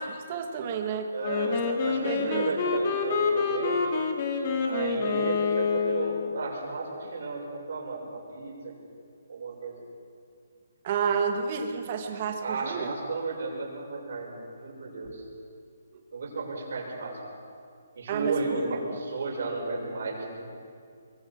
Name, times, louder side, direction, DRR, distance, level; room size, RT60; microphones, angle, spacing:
voice 1, 0.0-1.1 1.5-1.6 2.0-2.5 10.8-12.9 18.1-18.8, right 6 dB, 30° right, 4 dB, 2.1 m, -30 dB
voice 2, 1.1-3.9 4.6-8.7 9.3-9.7 12.4-15.2 16.1-17.2 18.0-20.4, right 3 dB, 55° right, -2 dB, 7.2 m, -33 dB
Wind instrument woodwind instrument, 1.2-6.4, left 5 dB, 30° left, 2.5 m, -27 dB
24.0 x 23.5 x 6.5 m, 2.3 s
hypercardioid pair, 170°, 0 cm